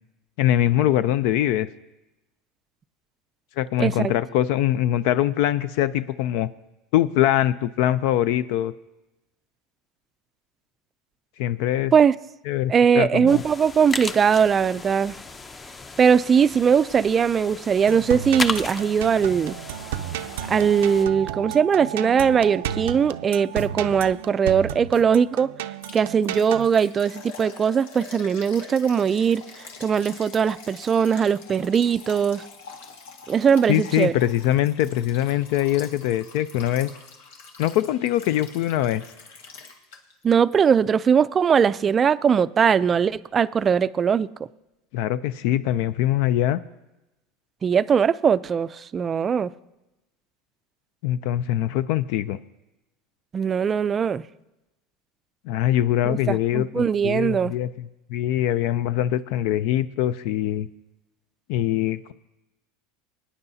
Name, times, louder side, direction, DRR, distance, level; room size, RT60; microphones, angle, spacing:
voice 1, 0.4-1.7 3.6-6.5 6.9-8.7 11.4-11.9 12.5-13.4 33.7-36.9 37.6-39.0 44.9-46.6 51.0-52.4 55.5-57.7 58.1-60.7 61.5-62.1, left 12 dB, 70° left, 0.4 m, -23 dB
voice 2, 3.8-4.1 11.9-12.1 12.7-15.2 16.0-19.6 20.5-25.5 25.9-29.4 29.8-32.4 33.3-34.1 40.2-44.3 47.6-49.5 53.3-54.2 56.0-57.5, right 7 dB, 25° right, 0.4 m, -20 dB
sound 1, 13.3-21.0, left 3 dB, 20° left, 0.6 m, -35 dB
sound 2, 17.9-26.7, right 11 dB, 85° right, 0.5 m, -33 dB
Liquid, 25.8-40.2 40.5-40.6 41.1-41.2, left 5 dB, 90° left, 1.7 m, -44 dB
23.5 x 9.7 x 2.7 m
supercardioid pair, 125°, 0 cm